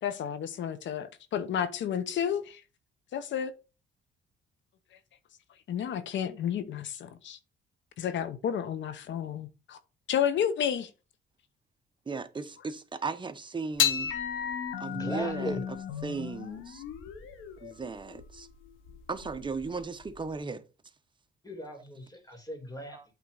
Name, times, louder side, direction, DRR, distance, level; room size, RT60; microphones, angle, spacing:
voice 1, 0.0-2.6 3.1-3.5 5.7-7.4 8.0-9.8 10.1-10.9, left 9 dB, 70° left, 0.9 m, -31 dB
voice 2, 12.1-14.1 14.8-15.6 16.0-16.8 17.6-18.5 19.1-20.6 22.9-23.0, right 4 dB, 25° right, 0.9 m, -36 dB
sound 1, 13.8-20.3, left 9 dB, 90° left, 1.4 m, -34 dB
voice 3, 14.9-15.6 21.4-23.0, equal, 20° left, 2.9 m, -38 dB
8.6 x 3.8 x 4.9 m
cardioid pair, 90°, 20 cm